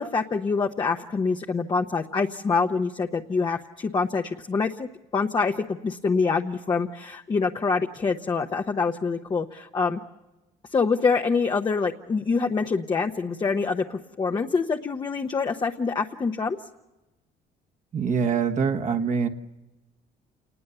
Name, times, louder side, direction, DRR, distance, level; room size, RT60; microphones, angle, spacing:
voice 1, 0.0-10.0 10.7-16.6, left 4 dB, 25° left, 4 dB, 0.9 m, -25 dB
voice 2, 17.9-19.3, right 6 dB, 45° right, 4 dB, 1.4 m, -24 dB
28.0 x 20.0 x 6.9 m, 1.0 s
cardioid pair, 110°, 17 cm